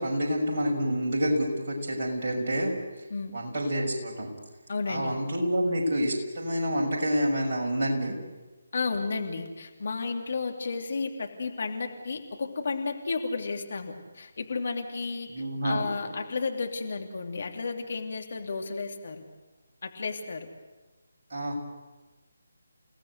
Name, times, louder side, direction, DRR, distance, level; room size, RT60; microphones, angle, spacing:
voice 1, 0.0-2.8 3.3-4.3 4.9-8.2 15.3-16.1 21.3-21.6, equal, 40° right, -1 dB, 6.2 m, -28 dB
voice 2, 4.7-5.1 8.7-15.3 15.6-19.2 19.8-20.5, left 4 dB, 50° left, 4 dB, 2.8 m, -32 dB
29.0 x 18.0 x 8.1 m, 1.2 s
figure-of-eight pair, 150°, 0 cm